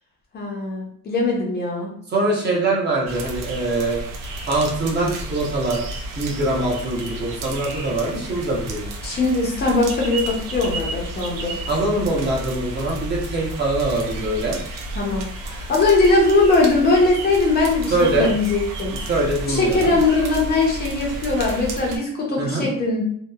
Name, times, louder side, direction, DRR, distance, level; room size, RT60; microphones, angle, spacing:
voice 1, 0.3-1.9 9.0-11.6 15.0-19.0 19.5-23.0, left 3 dB, 30° left, -2 dB, 0.5 m, -20 dB
voice 2, 2.1-4.0 4.5-5.8 6.2-8.9 11.7-14.6 17.9-18.3 19.1-19.9 22.4-22.7, right 2 dB, 35° right, -2 dB, 0.7 m, -23 dB
sound 1, 3.1-22.0, right 1 dB, 90° right, 0.5 m, -32 dB
2.8 x 2.0 x 2.2 m, 0.64 s
cardioid pair, 155°, 31 cm